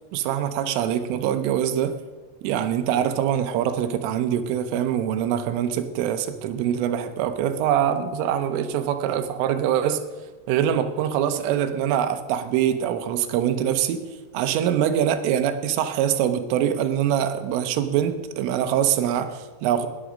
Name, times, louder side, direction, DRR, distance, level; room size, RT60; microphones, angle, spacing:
voice 1, 0.1-2.0 2.4-10.0 10.5-14.1 14.3-19.9, right 10 dB, 80° right, 9 dB, 3.4 m, -24 dB
19.0 x 10.5 x 5.1 m, 1.3 s
omnidirectional pair, 5.8 m